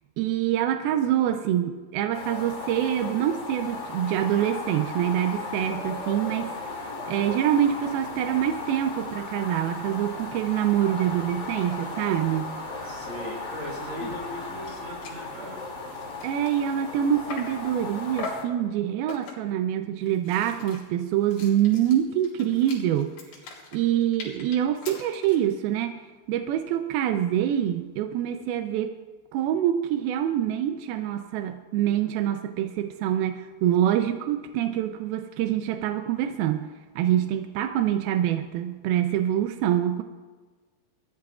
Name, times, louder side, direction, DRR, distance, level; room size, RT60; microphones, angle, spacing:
voice 1, 0.2-12.5 14.0-14.1 16.2-23.1 23.7-25.9 26.3-28.9 29.3-40.0, right 11 dB, 80° right, 7 dB, 2.2 m, -25 dB
voice 2, 1.0-1.4 12.8-15.7, left 1 dB, 45° right, -2 dB, 6.6 m, -39 dB
sound 1, 2.1-18.4, left 3 dB, 35° left, 2.5 m, -36 dB
sound 2, 14.3-14.4 14.6-14.8 15.0-15.2 15.7-17.6 18.2-18.5 19.1-19.6 20.0-25.5, left 4 dB, 65° left, 4.5 m, -41 dB
28.0 x 14.5 x 2.4 m, 1.4 s
omnidirectional pair, 4.9 m